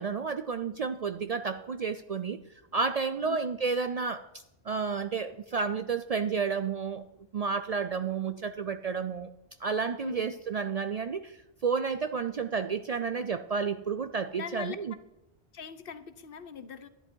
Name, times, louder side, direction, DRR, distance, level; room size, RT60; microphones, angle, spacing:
voice 1, 0.0-2.4 2.7-7.0 7.3-9.3 9.6-11.4 11.6-14.9, right 5 dB, 55° right, 10 dB, 0.4 m, -31 dB
voice 2, 10.0-10.4 14.4-14.8 15.5-16.9, left 7 dB, 65° left, 13 dB, 0.9 m, -41 dB
11.0 x 11.0 x 4.5 m, 0.92 s
omnidirectional pair, 1.0 m